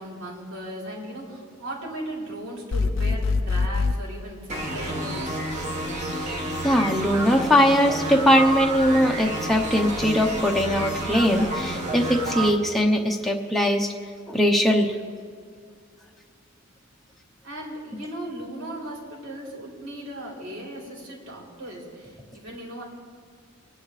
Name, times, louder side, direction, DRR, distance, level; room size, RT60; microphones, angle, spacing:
voice 1, 0.0-5.5 17.4-22.8, right 1 dB, 80° right, -3 dB, 3.6 m, -37 dB
sound 1, 2.7-4.0, left 4 dB, 75° left, 0.5 m, -23 dB
sound 2, 4.5-12.5, right 1 dB, 35° right, 1.6 m, -30 dB
voice 2, 6.6-13.9 14.3-14.9, equal, ahead, 0 dB, 0.8 m, -21 dB
24.0 x 9.9 x 3.3 m, 2.1 s
head